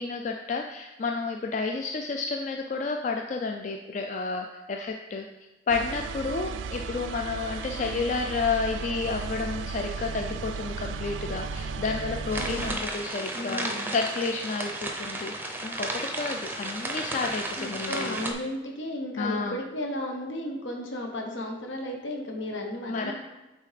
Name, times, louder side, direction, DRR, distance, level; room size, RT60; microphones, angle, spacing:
voice 1, 0.0-5.3 5.7-13.7 13.9-18.3 19.2-19.6 22.9-23.1, left 4 dB, 40° left, 3 dB, 0.3 m, -31 dB
sound 1, 5.7-12.8, right 4 dB, 85° right, 0.4 m, -35 dB
sound 2, 12.3-18.3, right 2 dB, 10° right, 0.6 m, -33 dB
voice 2, 12.4-12.8 13.3-13.9 17.6-23.1, left 1 dB, 80° left, 1 dB, 0.9 m, -34 dB
9.1 x 4.1 x 3.3 m, 1.1 s
head